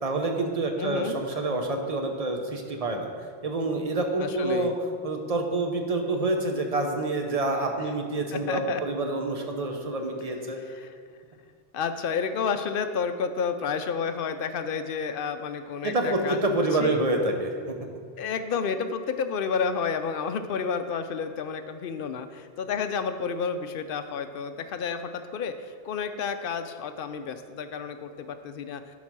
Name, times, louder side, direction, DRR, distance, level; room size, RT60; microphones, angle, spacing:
voice 1, 0.0-3.1 3.4-4.7 5.0-10.6 15.8-17.8, right 2 dB, 40° right, 3 dB, 0.9 m, -27 dB
voice 2, 0.8-1.2 4.2-4.7 8.3-8.8 10.7-10.9 11.7-16.4 16.8-17.0 18.2-28.8, left 6 dB, 65° left, 9 dB, 0.7 m, -30 dB
10.5 x 4.0 x 6.0 m, 2.1 s
omnidirectional pair, 1.0 m